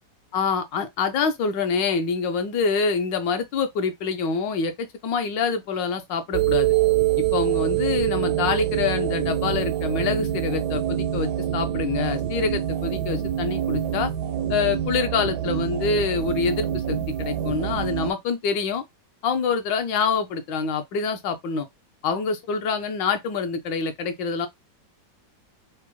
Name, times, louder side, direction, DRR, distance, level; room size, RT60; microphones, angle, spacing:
voice 1, 0.3-6.7 7.2-14.1 14.5-18.8 19.2-21.7 22.0-24.5, left 5 dB, 75° left, 1.4 m, -26 dB
sound 1, 6.3-18.1, right 12 dB, 75° right, 1.1 m, -25 dB
4.9 x 2.1 x 3.0 m
omnidirectional pair, 2.0 m